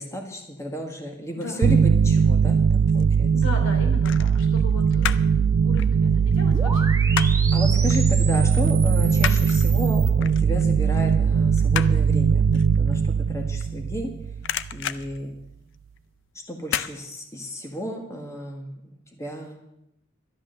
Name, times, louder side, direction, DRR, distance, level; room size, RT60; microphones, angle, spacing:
voice 1, 0.0-3.3 7.5-14.1 14.7-15.3 16.5-19.6, equal, 15° left, 2 dB, 1.6 m, -33 dB
sound 1, 1.6-14.8, right 6 dB, 70° right, 0.4 m, -20 dB
sound 2, 2.5-3.2 4.0-5.4 5.7-7.6 7.9-8.1 8.4-14.1 14.4-16.0 16.6-17.0 17.4-17.5, left 9 dB, 60° left, 0.5 m, -32 dB
voice 2, 3.3-7.3, left 2 dB, 85° left, 3 dB, 3.2 m, -37 dB
sound 3, 6.5-10.1, right 4 dB, 15° right, 0.9 m, -33 dB
12.5 x 10.5 x 6.5 m, 0.81 s
head